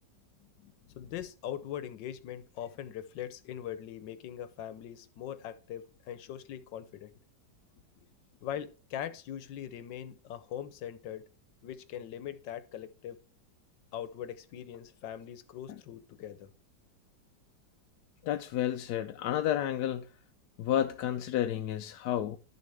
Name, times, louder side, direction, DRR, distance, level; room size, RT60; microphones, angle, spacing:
voice 1, 1.0-7.1 8.4-11.3 11.6-13.2 13.9-16.5, left 10 dB, 90° left, 1.5 m, -41 dB
voice 2, 18.2-20.0 20.6-22.4, left 11 dB, 70° left, 1.0 m, -31 dB
11.5 x 6.8 x 3.4 m
omnidirectional pair, 1.9 m